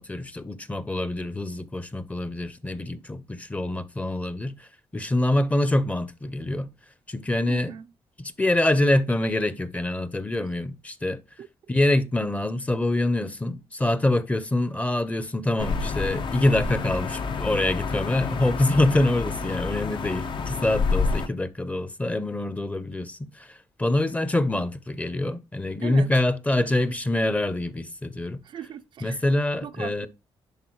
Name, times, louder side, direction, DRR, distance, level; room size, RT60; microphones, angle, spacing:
voice 1, 0.0-4.7 4.9-6.7 7.1-7.7 8.2-11.2 11.7-28.4 29.0-30.1, left 1 dB, 15° left, 0.7 m, -25 dB
voice 2, 7.5-7.8 10.4-10.5 11.4-11.5 25.8-26.1 26.6-26.7 28.4-29.2 29.6-30.1, right 9 dB, 55° right, 0.4 m, -39 dB
sound 1, 15.6-21.3, left 4 dB, 60° left, 0.8 m, -28 dB
10.5 x 3.8 x 3.0 m
cardioid pair, 125°, 10 cm